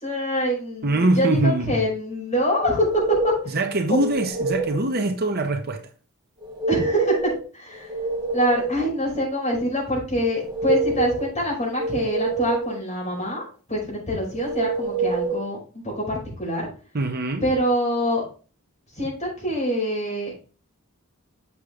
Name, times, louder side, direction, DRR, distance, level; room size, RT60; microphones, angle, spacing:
voice 1, 0.0-2.9 3.2-3.6 3.9-4.0 6.7-7.9 8.3-16.7 17.4-18.3 19.0-20.3, equal, 30° left, 5.1 m, -25 dB
voice 2, 0.8-1.9 3.5-5.9 16.9-17.5, right 2 dB, 45° right, 0.9 m, -23 dB
sound 1, 2.6-3.5 4.0-4.8 6.4-7.4 7.8-8.9 10.3-11.3 11.8-12.8 14.4-15.4, right 3 dB, 20° right, 1.6 m, -26 dB
8.4 x 6.5 x 3.6 m
head